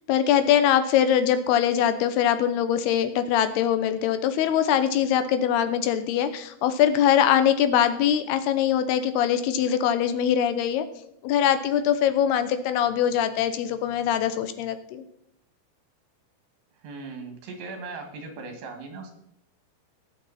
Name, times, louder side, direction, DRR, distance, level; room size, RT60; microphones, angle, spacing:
voice 1, 0.1-10.9 11.2-15.0, left 9 dB, 80° left, 10 dB, 2.7 m, -22 dB
voice 2, 16.8-19.1, right 3 dB, 80° right, 4 dB, 4.1 m, -38 dB
19.0 x 7.3 x 4.2 m, 0.76 s
omnidirectional pair, 4.7 m